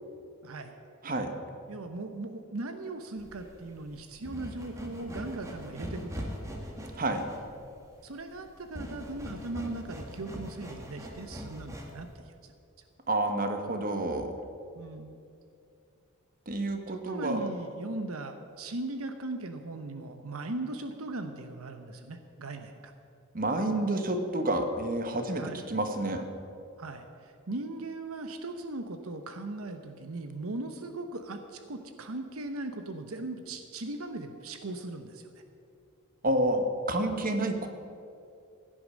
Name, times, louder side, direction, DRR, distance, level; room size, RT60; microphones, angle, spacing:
voice 1, 0.4-0.7 1.7-6.3 8.0-12.5 14.7-15.1 16.9-22.9 25.4-25.6 26.8-35.4, right 2 dB, 75° right, 7 dB, 0.9 m, -39 dB
sound 1, 3.2-12.1, equal, 15° right, 1.7 m, -42 dB
voice 2, 13.1-14.3 16.5-17.4 23.3-25.4 25.7-26.3 36.2-37.7, right 1 dB, 40° right, 6 dB, 1.2 m, -29 dB
16.0 x 10.0 x 6.3 m, 2.5 s
head